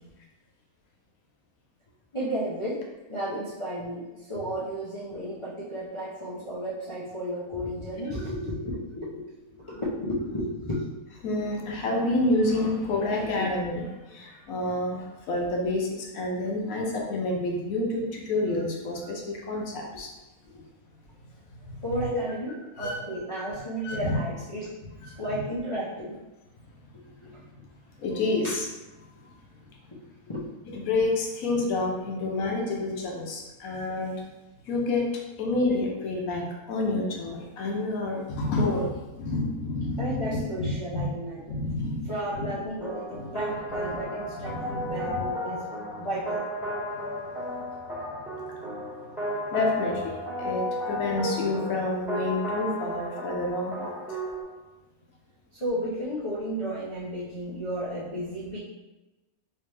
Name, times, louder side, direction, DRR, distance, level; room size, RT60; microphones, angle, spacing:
voice 1, 2.1-10.9 13.4-13.5 16.8-16.9 20.5-20.6 21.8-24.7 25.2-26.1 27.2-27.3 28.4-28.6 29.9-30.4 30.7-30.8 33.7-33.8 35.4-35.5 40.0-41.6 42.0-45.7 45.9-46.5 55.5-58.6, equal, 55° left, -9 dB, 0.3 m, -33 dB
voice 2, 11.2-13.8 14.1-20.1 21.6-22.1 22.8-23.0 23.4-23.5 23.8-24.2 25.1-25.2 28.0-28.7 29.2-29.3 30.7-34.2 34.6-35.1 35.4-41.0 41.5-42.5 43.1-43.4 44.4-45.3 49.5-54.2, left 2 dB, 75° left, 0 dB, 1.1 m, -29 dB
sound 1, 42.8-54.4, equal, ahead, 1.0 m, -33 dB
3.3 x 2.8 x 3.1 m, 1.1 s
omnidirectional pair, 1.5 m